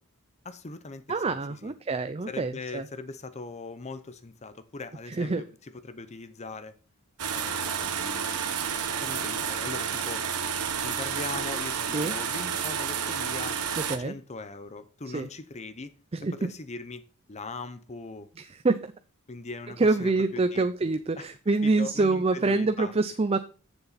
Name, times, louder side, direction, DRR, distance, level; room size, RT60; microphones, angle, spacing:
voice 1, 0.4-1.7 2.3-6.8 7.3-8.4 9.0-10.2 10.8-13.6 14.0-15.9 16.3-18.3 19.3-20.7 21.2-22.9, left 3 dB, 30° left, 0.7 m, -40 dB
voice 2, 1.1-2.8 5.2-5.4 11.9-12.1 13.9-14.1 15.1-15.3 16.1-16.3 18.6-18.9 19.8-23.4, right 3 dB, 25° right, 0.5 m, -26 dB
sound 1, 7.2-14.0, right 7 dB, 85° right, 1.4 m, -30 dB
14.5 x 7.1 x 4.1 m
head